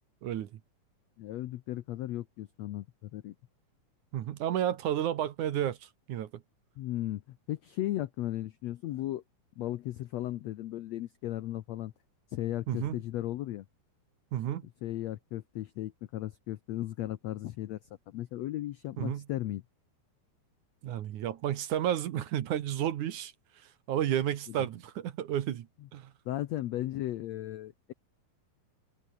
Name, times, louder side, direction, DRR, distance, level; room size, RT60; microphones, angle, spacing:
voice 1, 1.2-3.3 6.8-9.2 9.6-11.9 12.3-13.6 14.8-17.8 18.1-19.6 26.2-27.9, left 14 dB, 85° left, 1.5 m, -36 dB
voice 2, 4.1-6.4 12.7-13.0 14.3-14.6 19.0-19.2 20.8-23.3 23.9-26.1, right 11 dB, 65° right, 2.5 m, -32 dB
omnidirectional pair, 4.2 m